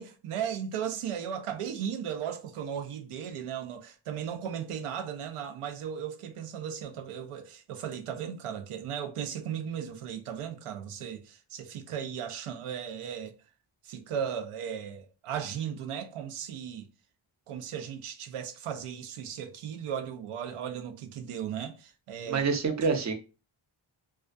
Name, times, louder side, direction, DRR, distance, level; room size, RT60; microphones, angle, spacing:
voice 1, 0.0-13.3 13.8-16.9 17.5-22.4, right 8 dB, 90° right, 0.6 m, -36 dB
voice 2, 22.3-23.1, right 5 dB, 35° right, 0.5 m, -27 dB
2.3 x 2.2 x 2.4 m
wide cardioid pair, 100°, 50 cm